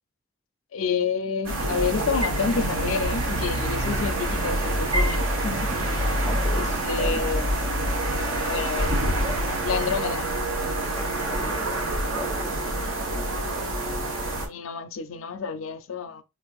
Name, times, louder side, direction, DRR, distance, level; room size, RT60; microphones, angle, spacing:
voice 1, 0.7-5.9 6.5-7.5 8.4-9.2 9.6-10.3 12.8-13.3 14.5-16.2, left 5 dB, 70° left, 0.4 m, -29 dB
sound 1, 1.4-14.5, right 1 dB, 65° right, 0.9 m, -26 dB
voice 2, 6.3-7.2 10.9-12.6, left 2 dB, 10° left, 0.4 m, -38 dB
4.4 x 2.6 x 2.3 m
head